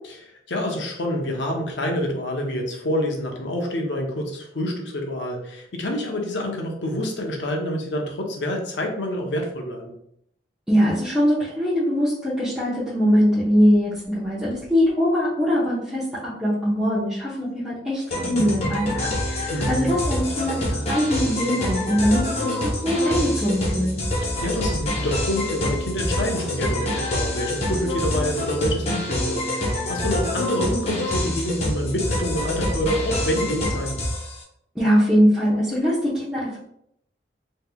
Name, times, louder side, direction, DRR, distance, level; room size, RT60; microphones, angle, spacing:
voice 1, 0.5-9.9 19.5-19.9 24.4-34.0, left 1 dB, 85° left, 2 dB, 0.7 m, -27 dB
voice 2, 10.7-24.0 34.7-36.6, equal, 5° right, -12 dB, 0.8 m, -22 dB
sound 1, 18.1-34.4, left 1 dB, 35° left, 0.8 m, -26 dB
3.6 x 3.1 x 2.2 m, 0.73 s
head